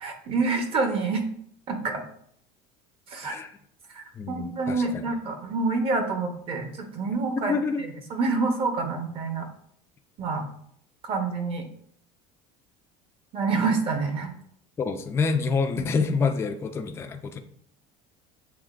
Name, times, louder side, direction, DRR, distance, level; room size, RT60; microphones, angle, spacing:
voice 1, 0.0-1.2 1.7-2.0 3.1-3.3 3.9-7.5 8.1-9.5 10.2-10.4 11.0-11.7 13.3-14.3, right 4 dB, 35° right, 5 dB, 0.8 m, -27 dB
voice 2, 4.2-5.1 7.4-7.9 14.8-17.4, left 4 dB, 15° left, 6 dB, 0.3 m, -27 dB
7.1 x 2.9 x 2.5 m, 0.65 s
cardioid pair, 145°, 16 cm